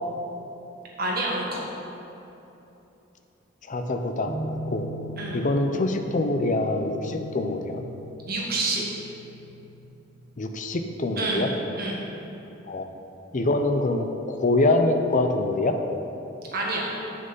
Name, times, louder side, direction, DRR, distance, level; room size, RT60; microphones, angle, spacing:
voice 1, 1.0-1.6 5.2-5.4 8.3-8.8 11.2-11.4 11.8-12.0 16.5-16.9, right 2 dB, 50° right, -3 dB, 1.7 m, -27 dB
voice 2, 3.7-4.4 4.7-4.9 5.3-7.8 10.4-11.5 12.7-12.9 13.3-15.8, left 2 dB, 40° left, 6 dB, 0.6 m, -24 dB
sound 1, 4.3-9.8, equal, 30° right, 1.0 m, -39 dB
8.0 x 6.6 x 5.4 m, 3.0 s
head